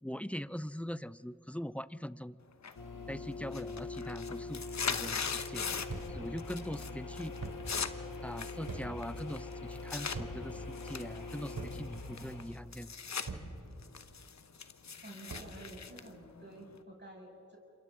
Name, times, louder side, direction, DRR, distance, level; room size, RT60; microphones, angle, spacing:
voice 1, 0.0-2.4 3.1-5.7 6.1-7.3 8.2-12.9, equal, 5° left, 16 dB, 0.5 m, -42 dB
sound 1, 2.6-3.1 3.4-6.1 6.4-6.9 7.2-10.2 10.7-13.3 13.6-16.8, left 6 dB, 60° left, 1.0 m, -40 dB
sound 2, 2.8-12.5, left 3 dB, 85° left, 1.8 m, -43 dB
sound 3, 5.9-6.3 7.4-7.7 8.7-9.1 10.1-10.5 11.5-12.0 13.3-13.6 15.3-15.6, right 3 dB, 85° right, 3.3 m, -42 dB
voice 2, 15.0-17.6, right 1 dB, 35° right, -1 dB, 6.1 m, -51 dB
29.5 x 26.5 x 3.8 m, 2.8 s
cardioid pair, 45°, 31 cm